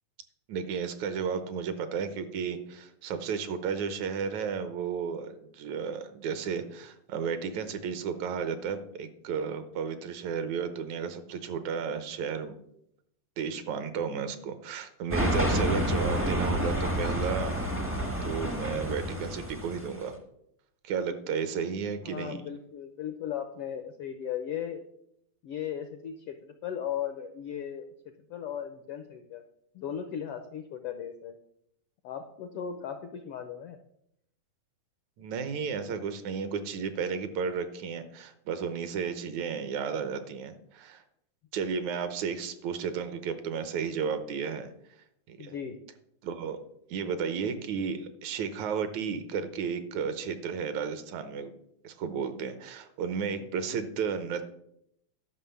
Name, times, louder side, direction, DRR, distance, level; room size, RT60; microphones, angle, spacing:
voice 1, 0.5-12.6 13.4-17.6 18.2-20.1 20.8-22.4 35.2-41.0 41.5-44.7 45.3-45.5 46.2-46.6 46.9-51.5 51.8-54.5, right 6 dB, 75° right, 10 dB, 2.1 m, -33 dB
sound 1, 15.1-20.0, equal, 15° right, 0.4 m, -29 dB
voice 2, 22.0-24.9 25.4-29.4 29.7-31.3 32.0-33.8 45.4-45.8 53.4-53.8, left 9 dB, 80° left, 7 dB, 1.3 m, -37 dB
11.0 x 5.9 x 7.0 m, 0.76 s
omnidirectional pair, 3.5 m